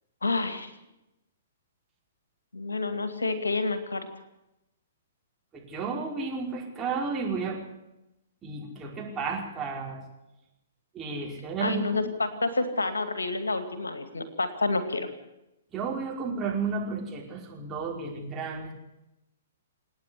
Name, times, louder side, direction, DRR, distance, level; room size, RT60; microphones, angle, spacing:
voice 1, 0.2-0.7 2.5-4.1 11.6-15.1, left 3 dB, 75° left, 10 dB, 2.3 m, -29 dB
voice 2, 5.5-7.6 8.4-10.0 10.9-12.0 15.7-18.7, right 4 dB, 15° right, -2 dB, 5.0 m, -32 dB
28.5 x 9.6 x 9.8 m, 0.93 s
figure-of-eight pair, 115°, 0 cm